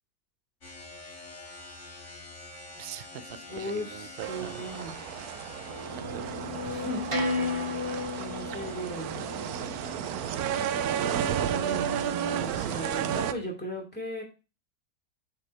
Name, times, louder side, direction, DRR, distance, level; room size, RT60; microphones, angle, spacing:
sound 1, 0.6-13.0, left 3 dB, 55° left, 2.3 m, -47 dB
voice 1, 2.8-4.7 4.9-5.2 5.9-6.5, right 9 dB, 60° right, 13 dB, 0.7 m, -44 dB
voice 2, 3.5-5.0 6.6-7.1 7.6-7.8 8.2-9.2 11.4-14.2, equal, 5° left, -1 dB, 2.4 m, -37 dB
sound 2, 4.2-13.3, right 9 dB, 90° right, 1.1 m, -32 dB
sound 3, 5.7-10.8, left 2 dB, 25° right, 0.9 m, -34 dB
8.6 x 4.8 x 4.2 m, 0.31 s
omnidirectional pair, 1.5 m